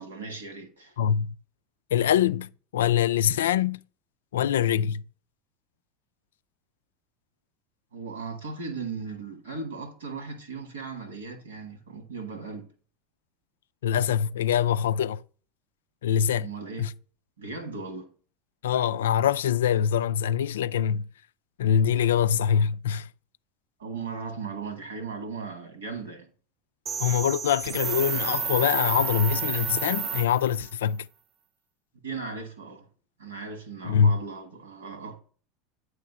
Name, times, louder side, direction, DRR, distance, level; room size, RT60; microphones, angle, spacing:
voice 1, 0.0-1.0 7.9-12.7 16.4-16.9 17.4-18.1 23.8-26.3 32.0-32.9 33.2-35.2, right 4 dB, 80° right, 1.7 m, -37 dB
voice 2, 1.0-1.4 1.9-3.8 4.3-5.0 13.8-15.2 16.0-16.5 16.8-16.9 18.6-21.1 21.6-23.1 27.0-31.1 33.8-34.2, left 9 dB, 75° left, 0.3 m, -24 dB
sound 1, 26.9-30.7, right 6 dB, 40° right, 0.6 m, -30 dB
9.3 x 3.3 x 6.7 m
figure-of-eight pair, 80°, 0 cm